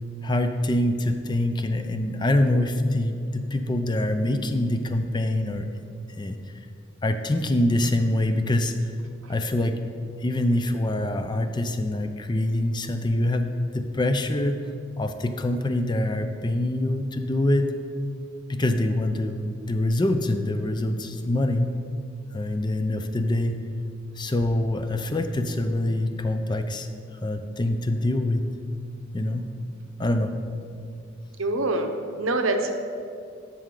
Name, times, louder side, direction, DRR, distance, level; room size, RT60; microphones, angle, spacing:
voice 1, 0.2-5.7 6.2-6.4 7.0-8.7 9.3-9.8 10.2-14.6 15.0-17.7 18.5-21.7 22.3-23.6 24.2-26.9 27.2-28.4 29.1-29.5 30.0-30.3, left 1 dB, 20° left, 8 dB, 0.4 m, -25 dB
voice 2, 31.4-31.9 32.2-32.7, right 2 dB, 85° right, 5 dB, 0.9 m, -24 dB
12.5 x 6.4 x 3.8 m, 2.4 s
head